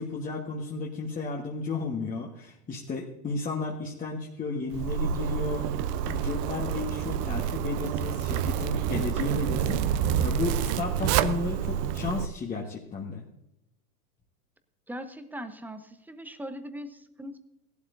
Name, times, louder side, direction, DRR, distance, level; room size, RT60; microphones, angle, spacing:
voice 1, 0.0-5.7 6.1-13.2, left 4 dB, 20° left, -2 dB, 1.4 m, -33 dB
Zipper (clothing), 4.7-12.2, right 9 dB, 35° right, 0.6 m, -28 dB
voice 2, 14.9-17.4, equal, 5° right, 9 dB, 0.8 m, -40 dB
17.0 x 12.0 x 2.6 m, 0.87 s
hypercardioid pair, 100°, 46 cm